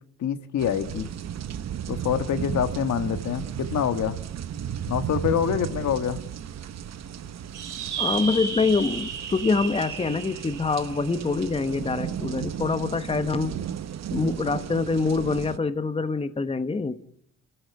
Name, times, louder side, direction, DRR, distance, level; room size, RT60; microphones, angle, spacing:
voice 1, 0.2-1.1 1.9-4.2 4.9-6.2, left 8 dB, 70° left, 10 dB, 1.6 m, -26 dB
sound 1, 0.6-15.6, right 9 dB, 60° right, 1.0 m, -34 dB
sound 2, 7.5-12.3, right 6 dB, 80° right, 3.4 m, -34 dB
voice 2, 8.0-13.6 14.1-17.0, left 4 dB, 20° left, 11 dB, 1.0 m, -25 dB
29.0 x 14.0 x 9.5 m, 0.72 s
cardioid pair, 90°, 30 cm